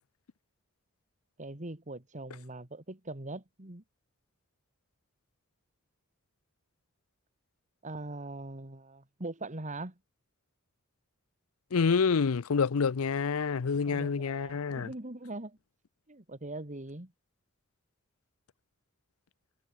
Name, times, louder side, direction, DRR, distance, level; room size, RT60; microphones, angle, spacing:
voice 1, 1.4-3.8 7.8-9.9 13.9-15.6 16.1-17.1, right 2 dB, 35° right, 2.6 m, -41 dB
voice 2, 11.7-14.9, left 5 dB, 75° left, 0.6 m, -27 dB
head